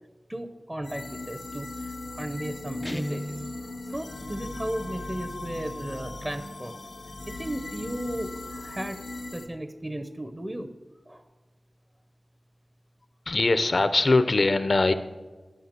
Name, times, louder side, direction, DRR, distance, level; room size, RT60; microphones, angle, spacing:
voice 1, 0.3-3.4 3.8-6.8 7.3-10.7 11.1-11.2, right 1 dB, 25° right, 9 dB, 0.7 m, -35 dB
sound 1, 0.8-9.5, left 2 dB, 90° left, 0.9 m, -38 dB
Guitar, 2.8-3.6, equal, 15° left, 0.4 m, -34 dB
voice 2, 13.3-14.9, left 3 dB, 60° left, 11 dB, 0.7 m, -21 dB
12.0 x 5.5 x 6.7 m, 1.3 s
wide cardioid pair, 75°, 0 cm